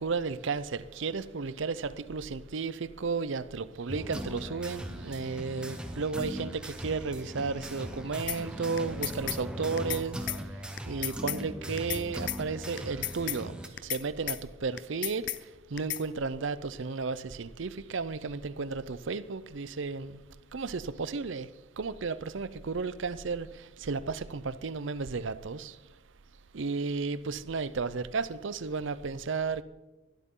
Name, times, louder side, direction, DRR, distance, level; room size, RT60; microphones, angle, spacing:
voice 1, 0.0-15.3 15.7-20.2 20.5-25.8 26.5-29.6, right 4 dB, 65° right, 0.6 m, -34 dB
sound 1, 3.9-13.7, equal, 5° right, 0.9 m, -39 dB
sound 2, 8.3-8.4 8.8-9.4 9.8-10.0 10.3-10.4 10.8-11.4 11.8-12.0 12.3-12.4 12.8-13.4 13.8-14.0 14.3-14.4 14.8-15.4 15.8-16.0, left 14 dB, 55° left, 0.6 m, -33 dB
21.0 x 12.5 x 3.8 m
head